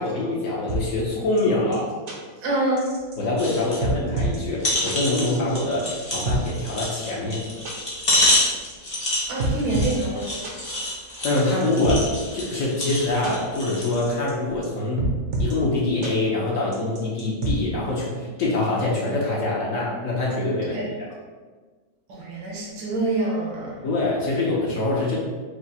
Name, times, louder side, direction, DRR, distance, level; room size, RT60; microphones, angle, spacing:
voice 1, 0.0-1.9 3.2-7.4 11.2-12.1 12.3-15.1 15.4-21.1 23.8-25.2, left 2 dB, 60° left, -4 dB, 0.9 m, -24 dB
sound 1, 0.7-0.8 1.4-1.5 1.7-1.8 2.1-2.2 2.8-3.2 3.5-3.6 3.8-4.4 4.9-5.0 5.6-6.4 7.0-7.1 7.3-7.4 7.6-7.7 8.4-9.1 9.4-10.0 10.4-10.5 11.1-12.0 12.5-12.6 12.9-13.0 13.2-13.3 13.9-14.3 14.6-14.7 15.0-15.5 16.0-16.1 16.7-17.5, right 2 dB, 60° right, 0.8 m, -27 dB
voice 2, 2.4-2.9 9.3-10.3 20.7-20.8 22.1-23.8, right 2 dB, 75° right, -4 dB, 1.6 m, -26 dB
sound 2, 3.4-3.8 4.2-4.3 4.6-13.9 14.5-14.6, left 1 dB, 30° left, 0.6 m, -27 dB
4.8 x 2.0 x 4.1 m, 1.4 s
omnidirectional pair, 2.1 m